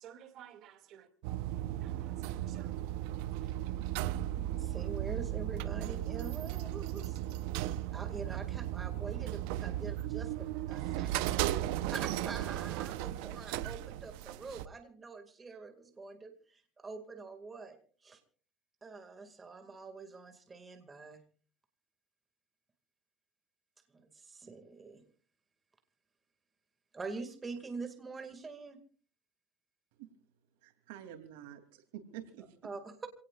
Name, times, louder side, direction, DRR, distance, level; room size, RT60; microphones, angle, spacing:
voice 1, 0.0-1.3 1.8-2.7, right 10 dB, 45° right, 7 dB, 2.4 m, -54 dB
sound 1, 1.2-14.7, right 13 dB, 75° right, 0.8 m, -36 dB
voice 2, 4.4-7.2 7.9-17.8 18.0-18.2 18.8-21.2 23.9-25.0 26.9-28.8 32.6-33.1, right 4 dB, 15° right, 7 dB, 2.2 m, -45 dB
voice 3, 30.6-32.5, right 11 dB, 90° right, 7 dB, 3.0 m, -48 dB
27.5 x 18.0 x 2.5 m, 0.41 s
cardioid pair, 150°, 0 cm